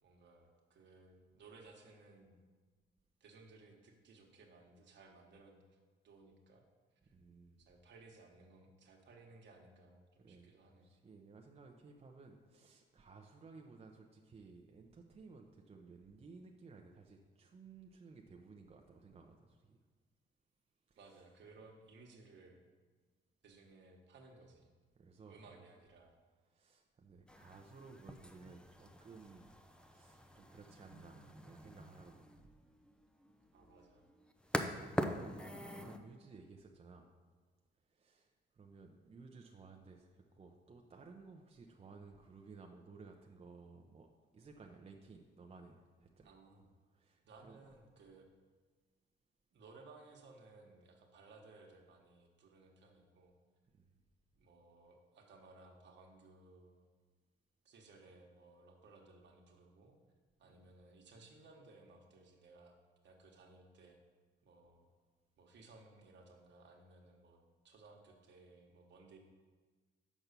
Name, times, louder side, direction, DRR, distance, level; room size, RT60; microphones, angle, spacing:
voice 1, 0.0-2.4 3.2-5.8 6.0-6.6 7.0-7.1 7.7-10.9 21.0-22.6 23.4-24.7 25.3-26.1 33.5-34.1 46.2-46.7 47.2-48.3 49.5-53.3 54.3-56.8 57.6-60.0 60.4-62.8 63.0-64.0 64.4-64.9 65.4-69.2, right 3 dB, 65° right, 2 dB, 1.4 m, -60 dB
voice 2, 7.1-7.6 10.2-10.6 10.8-19.8 20.9-21.0 24.9-25.7 26.5-29.5 29.8-32.5 34.4-37.1 37.9-44.1 44.3-46.3 46.9-47.6 53.7-53.9, right 4 dB, 30° right, 2 dB, 0.7 m, -57 dB
sound 1, 27.3-36.0, equal, 5° left, 0.6 m, -44 dB
6.0 x 5.4 x 6.8 m, 1.4 s
cardioid pair, 90°, 20 cm